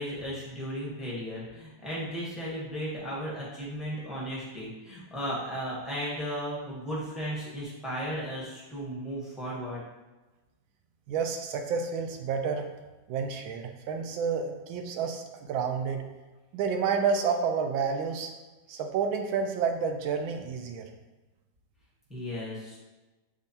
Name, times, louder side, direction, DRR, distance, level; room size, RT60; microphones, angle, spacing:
voice 1, 0.0-9.8 22.1-22.8, equal, ahead, -7 dB, 0.4 m, -35 dB
voice 2, 11.1-12.6 13.1-16.0 16.5-18.3 18.7-20.9, right 6 dB, 85° right, 4 dB, 1.3 m, -29 dB
6.4 x 2.5 x 2.7 m, 1.1 s
omnidirectional pair, 2.1 m